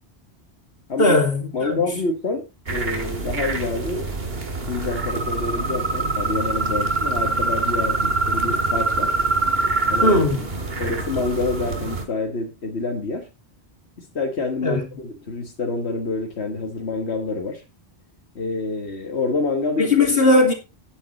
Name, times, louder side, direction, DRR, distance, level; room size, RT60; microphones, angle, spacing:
voice 1, 1.0-1.8 10.0-10.4 14.6-14.8 19.8-20.5, left 2 dB, 65° left, 2.9 m, -18 dB
voice 2, 1.5-4.1 4.7-9.1 9.9-10.4 10.8-13.3 14.0-17.6 18.4-19.9, left 3 dB, 80° left, 1.9 m, -27 dB
sound 1, 2.7-12.0, right 3 dB, 65° right, 2.2 m, -24 dB
9.6 x 9.4 x 4.2 m
omnidirectional pair, 1.1 m